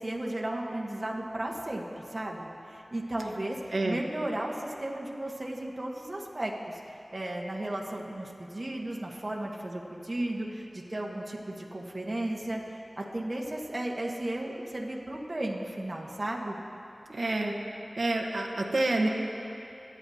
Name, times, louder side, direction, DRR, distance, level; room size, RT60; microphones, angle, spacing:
voice 1, 0.0-16.6, right 1 dB, 45° right, -2 dB, 1.3 m, -35 dB
voice 2, 17.1-17.5 18.0-19.1, right 2 dB, 75° right, 1 dB, 1.1 m, -28 dB
25.0 x 9.7 x 2.8 m, 2.8 s
cardioid pair, 40°, 0 cm